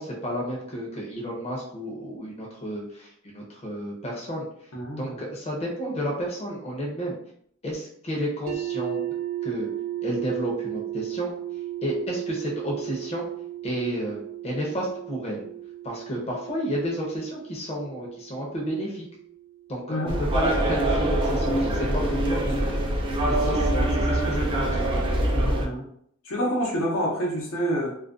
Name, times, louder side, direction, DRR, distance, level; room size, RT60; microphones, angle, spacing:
voice 1, 0.0-4.5 5.0-7.2 7.6-9.0 9.4-9.7 10.0-11.3 11.8-13.2 13.6-15.4 15.8-19.1 19.7-22.9 23.3-24.9, equal, 30° left, -3 dB, 0.6 m, -31 dB
voice 2, 4.7-5.2 19.9-20.2 25.0-25.9 26.2-28.0, equal, 80° left, -3 dB, 0.8 m, -28 dB
sound 1, 8.5-20.4, right 13 dB, 85° right, 0.5 m, -35 dB
sound 2, 20.1-25.6, right 1 dB, 25° right, 0.4 m, -24 dB
2.4 x 2.1 x 2.4 m, 0.67 s
head